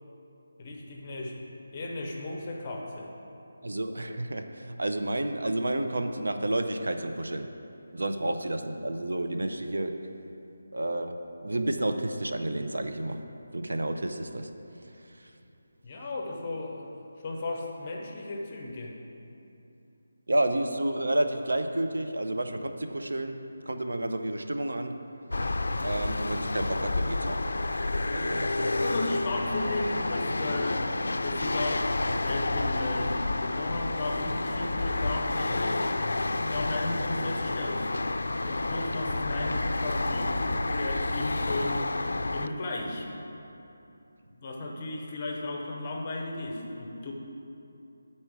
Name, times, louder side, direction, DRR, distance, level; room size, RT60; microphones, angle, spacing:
voice 1, 0.6-1.4 1.7-3.1 15.8-16.9 17.2-18.9 28.8-30.9 31.2-35.9 36.4-37.9 38.4-41.9 42.3-43.1 44.4-47.1, left 2 dB, 20° left, 0 dB, 0.6 m, -35 dB
voice 2, 3.6-7.5 7.9-9.9 10.7-11.2 11.4-13.2 13.5-14.5 20.3-23.4 23.7-24.9 25.8-27.5 28.1-28.9, right 1 dB, 85° right, 6 dB, 0.6 m, -30 dB
sound 1, 25.3-42.5, left 2 dB, 75° left, 0.3 m, -30 dB
9.2 x 4.3 x 4.7 m, 2.8 s
figure-of-eight pair, 180°, 0 cm